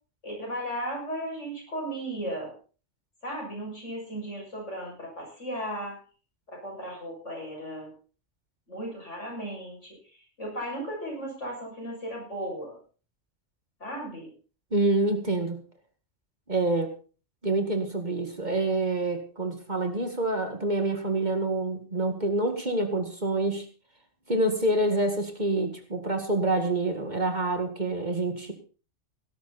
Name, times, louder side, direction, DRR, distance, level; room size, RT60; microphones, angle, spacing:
voice 1, 0.2-2.5 3.2-6.0 6.5-7.9 8.7-12.8 13.8-14.3, right 1 dB, 70° left, -1 dB, 7.5 m, -36 dB
voice 2, 14.7-15.6 16.5-16.9 17.4-23.7 24.3-28.5, right 2 dB, 35° right, 6 dB, 2.1 m, -27 dB
17.0 x 12.5 x 4.2 m, 0.36 s
omnidirectional pair, 1.3 m